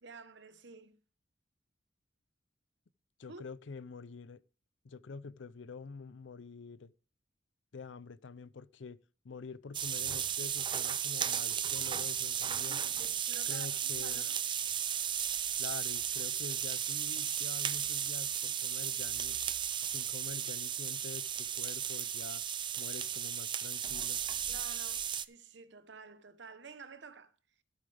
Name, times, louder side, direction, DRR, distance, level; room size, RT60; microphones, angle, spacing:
voice 1, 0.0-1.0 3.3-3.5 12.7-14.4 24.5-27.4, right 4 dB, 65° right, 0.9 m, -51 dB
voice 2, 3.2-4.4 4.8-6.9 7.7-9.0 9.2-12.8 13.5-14.3 15.6-19.4 19.9-22.4 22.8-24.2, left 4 dB, 70° left, 0.5 m, -47 dB
sound 1, 9.7-25.3, right 9 dB, 25° right, 0.4 m, -35 dB
13.0 x 8.9 x 3.4 m
head